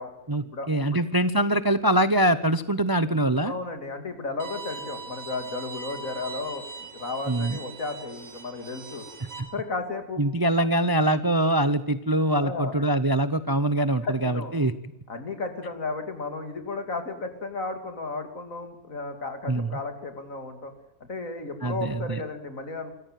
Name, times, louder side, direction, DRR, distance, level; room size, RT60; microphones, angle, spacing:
voice 1, 0.3-3.5 7.3-7.6 9.4-9.5 10.2-14.7 19.5-19.8 21.6-22.2, right 1 dB, 20° right, 14 dB, 0.6 m, -23 dB
voice 2, 3.4-9.1 9.5-10.2 10.6-10.7 12.4-12.8 14.0-14.5 15.1-20.7 21.0-22.9, left 3 dB, 65° left, 7 dB, 3.3 m, -34 dB
Bowed string instrument, 4.4-9.4, right 4 dB, 65° right, 5.3 m, -40 dB
26.0 x 14.5 x 7.5 m, 0.82 s
omnidirectional pair, 1.5 m